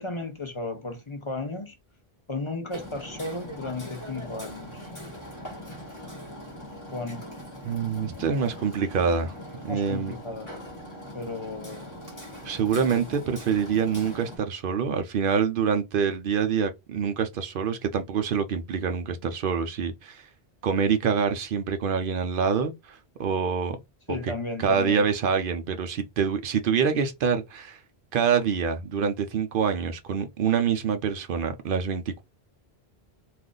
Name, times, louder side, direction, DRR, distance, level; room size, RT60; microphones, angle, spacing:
voice 1, 0.0-1.8 2.3-4.9 6.9-7.3 9.6-10.5 11.1-12.2 24.1-25.0, left 2 dB, 35° left, 0.5 m, -34 dB
Hammer, 2.7-14.4, equal, 20° left, 1.1 m, -41 dB
voice 2, 7.6-9.3 9.6-10.1 12.4-20.2 20.6-23.8 24.1-24.2 24.6-27.8 28.1-32.2, right 6 dB, 65° right, 0.7 m, -26 dB
2.4 x 2.4 x 3.7 m
omnidirectional pair, 1.1 m